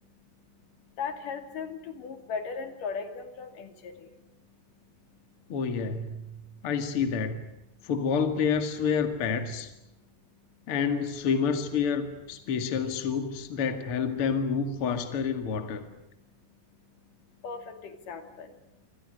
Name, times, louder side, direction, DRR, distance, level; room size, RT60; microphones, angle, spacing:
voice 1, 1.0-4.1 17.4-17.7 18.1-18.5, left 5 dB, 70° left, 8 dB, 4.0 m, -37 dB
voice 2, 5.5-7.4 7.8-9.7 10.7-15.8, left 6 dB, 45° left, 8 dB, 2.7 m, -28 dB
27.5 x 26.5 x 6.7 m, 0.87 s
omnidirectional pair, 4.0 m